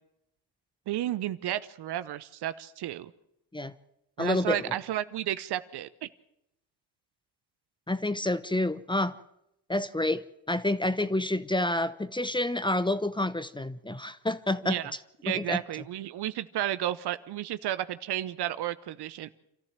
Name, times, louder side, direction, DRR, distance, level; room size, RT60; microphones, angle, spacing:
voice 1, 0.9-3.1 4.2-6.1 14.6-14.9 15.2-19.3, right 13 dB, 60° right, 1.0 m, -32 dB
voice 2, 4.2-4.7 7.9-9.2 9.7-14.8 15.3-15.6, left 1 dB, 10° left, 0.9 m, -28 dB
27.0 x 14.0 x 7.5 m
hypercardioid pair, 50°, 44 cm